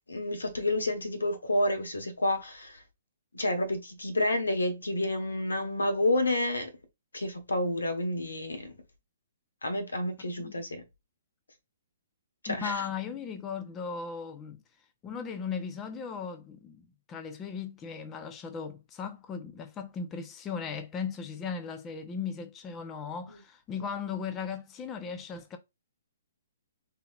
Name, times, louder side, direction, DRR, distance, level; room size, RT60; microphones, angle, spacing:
voice 1, 0.1-2.8 3.3-6.7 7.1-8.7 9.6-10.8 12.4-12.9 23.3-23.4, left 1 dB, 85° left, 1.2 m, -29 dB
voice 2, 12.5-14.6 15.0-25.6, left 6 dB, 20° left, 0.7 m, -37 dB
6.7 x 2.9 x 2.4 m
figure-of-eight pair, 130°, 0 cm